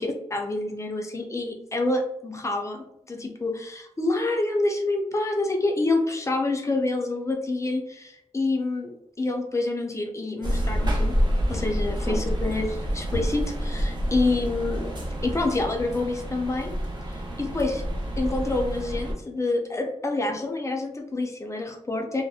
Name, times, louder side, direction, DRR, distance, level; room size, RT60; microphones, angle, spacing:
voice 1, 0.0-11.1 11.5-14.9 15.2-16.7 17.1-17.8 18.2-22.2, left 2 dB, 25° left, 2 dB, 0.5 m, -27 dB
sound 1, 10.4-19.1, equal, 35° right, 0.7 m, -28 dB
2.7 x 2.0 x 2.3 m, 0.80 s
wide cardioid pair, 95°, 12 cm